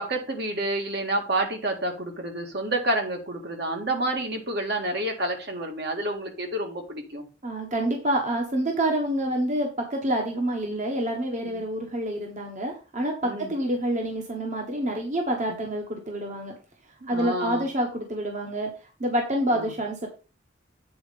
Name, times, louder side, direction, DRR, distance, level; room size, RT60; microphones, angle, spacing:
voice 1, 0.0-7.3 11.4-11.6 13.2-13.5 15.5-15.6 17.0-17.6 19.5-19.7, right 1 dB, 60° right, 3 dB, 1.8 m, -29 dB
voice 2, 7.4-16.5 17.1-18.7 19.0-20.1, right 1 dB, 40° right, 2 dB, 1.3 m, -27 dB
8.7 x 4.4 x 5.2 m, 0.33 s
head